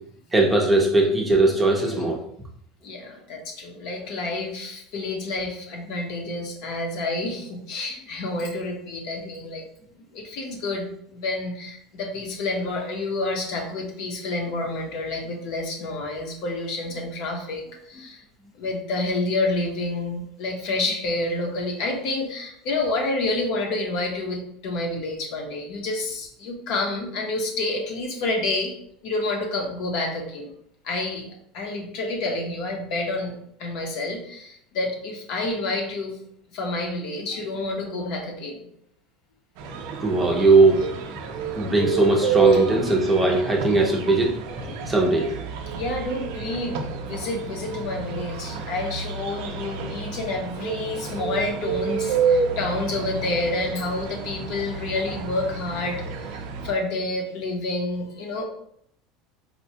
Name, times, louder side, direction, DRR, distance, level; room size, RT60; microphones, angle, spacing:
voice 1, 0.3-2.2 40.0-40.9 41.6-45.4, right 2 dB, 10° right, -1 dB, 0.6 m, -19 dB
voice 2, 2.8-9.6 10.1-18.2 18.5-28.7 29.0-30.5 30.8-31.3 31.5-33.3 33.6-36.2 36.5-38.7 45.7-58.4, left 2 dB, 60° left, 2 dB, 0.8 m, -29 dB
sound 1, 39.6-56.7, right 5 dB, 65° right, 0.4 m, -29 dB
4.3 x 2.2 x 2.7 m, 0.69 s
supercardioid pair, 150°, 0 cm